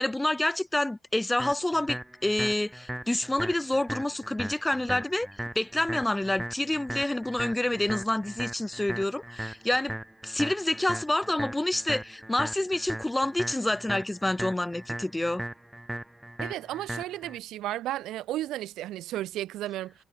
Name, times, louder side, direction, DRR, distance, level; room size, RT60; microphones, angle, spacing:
voice 1, 0.0-5.3 5.6-10.0 10.2-15.4, left 1 dB, 10° left, 0.3 m, -28 dB
sound 1, 1.4-17.4, right 1 dB, 5° right, 1.8 m, -38 dB
voice 2, 16.4-19.9, right 14 dB, 85° right, 0.4 m, -33 dB
cardioid pair, 90°, 0 cm